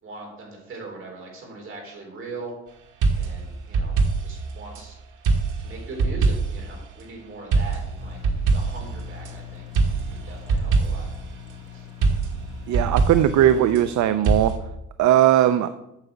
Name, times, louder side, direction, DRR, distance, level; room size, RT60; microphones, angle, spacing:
voice 1, 0.0-2.5 3.2-3.9 4.2-5.0 5.6-8.2 8.4-9.7 10.1-11.1 11.7-11.9, right 3 dB, 40° right, 0 dB, 4.2 m, -40 dB
sound 1, 3.0-4.9 5.2-6.7 7.5-9.3 9.7-11.2 12.0-13.9 14.2-14.6, right 4 dB, 90° right, 1.9 m, -23 dB
sound 2, 8.0-13.7, left 10 dB, 50° left, 3.3 m, -43 dB
voice 2, 12.7-14.5 15.0-15.7, right 11 dB, 65° right, 11 dB, 0.6 m, -18 dB
8.9 x 6.9 x 8.0 m, 0.89 s
cardioid pair, 155°, 30 cm